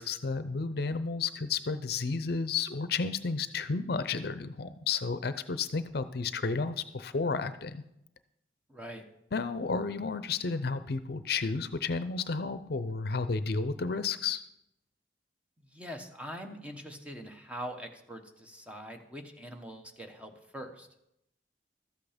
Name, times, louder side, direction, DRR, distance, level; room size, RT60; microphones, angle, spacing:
voice 1, 0.0-7.8 9.3-14.4, left 4 dB, 60° left, 12 dB, 0.6 m, -32 dB
voice 2, 8.7-9.0 15.6-20.9, equal, 5° right, 4 dB, 1.1 m, -43 dB
13.0 x 8.4 x 5.1 m, 0.81 s
head